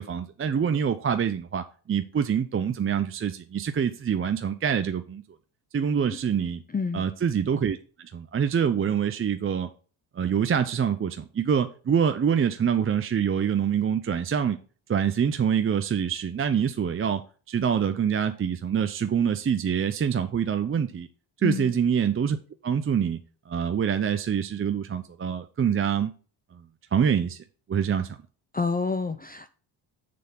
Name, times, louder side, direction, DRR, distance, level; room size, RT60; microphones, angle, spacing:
voice 1, 0.0-5.2 5.7-6.6 6.9-9.7 10.2-14.6 14.9-17.2 17.5-21.1 21.4-22.4 22.6-23.2 23.5-26.1 26.5-26.6 26.9-27.4 27.7-28.1, right 7 dB, 25° right, 0.5 m, -25 dB
voice 2, 6.7-7.0 21.4-21.7 28.5-29.5, left 4 dB, 20° left, 0.5 m, -28 dB
6.8 x 6.7 x 3.8 m
cardioid pair, 90°, 48 cm